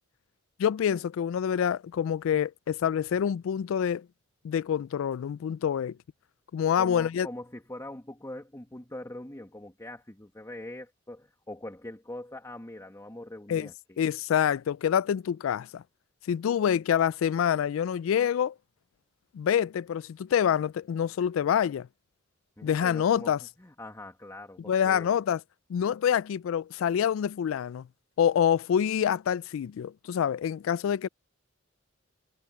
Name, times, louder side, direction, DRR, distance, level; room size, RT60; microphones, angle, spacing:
voice 1, 0.6-4.1 4.4-6.0 6.5-7.3 13.5-13.7 14.0-15.8 16.3-18.5 19.3-21.9 22.6-23.4 24.7-25.4 25.7-27.9 28.2-31.1, left 8 dB, 80° left, 0.3 m, -26 dB
voice 2, 6.7-14.0 22.6-23.3 23.6-25.1, left 1 dB, 15° left, 1.6 m, -42 dB
head